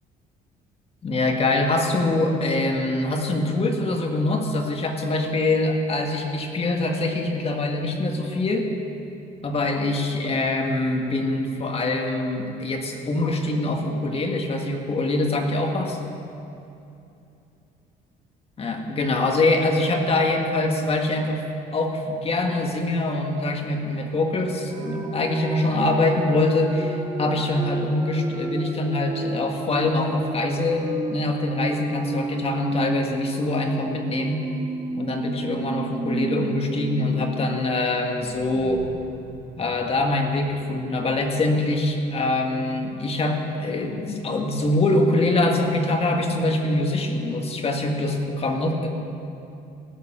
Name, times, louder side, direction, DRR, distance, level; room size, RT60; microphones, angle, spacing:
voice 1, 1.0-8.7 9.4-16.0 18.6-21.5 21.7-34.4 34.9-38.8 39.6-48.9, left 2 dB, 35° left, 3 dB, 1.8 m, -24 dB
sound 1, 24.7-37.2 37.5-37.6 38.0-40.7, right 2 dB, 20° right, 1.5 m, -33 dB
16.0 x 6.8 x 9.0 m, 2.7 s
cardioid pair, 110°, 17 cm